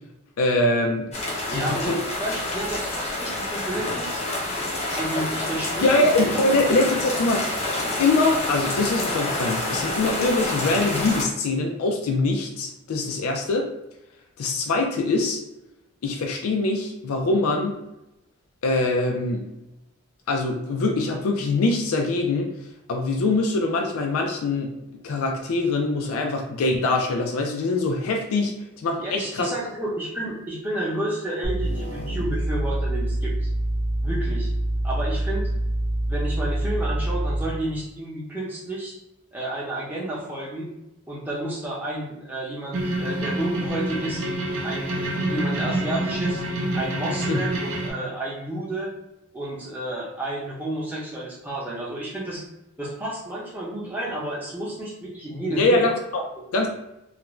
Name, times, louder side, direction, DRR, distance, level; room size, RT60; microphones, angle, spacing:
voice 1, 0.4-1.1 1.5-2.0 5.8-7.4 8.0-13.7 14.4-15.4 16.0-17.8 18.6-19.5 20.3-22.5 22.9-24.7 25.0-28.5 28.8-29.5 47.3-47.4 55.6-56.2 56.5-56.7, left 2 dB, 85° left, 2 dB, 0.4 m, -23 dB
sound 1, 1.1-11.2, left 2 dB, 30° left, 0.6 m, -28 dB
voice 2, 1.5-1.9 2.2-4.2 5.0-6.0 6.3-6.4 6.9-7.0 29.0-33.5 34.0-34.5 34.8-35.5 36.1-38.9 39.3-40.7 41.1-44.2 44.6-46.4 46.7-48.9 49.3-52.4 52.8-55.8 56.5-56.7, right 1 dB, 10° right, -6 dB, 0.6 m, -31 dB
sound 2, 31.4-37.6, right 1 dB, 65° left, 0.8 m, -26 dB
sound 3, 42.7-47.9, right 1 dB, 85° right, 0.6 m, -27 dB
2.4 x 2.1 x 3.0 m, 0.90 s
head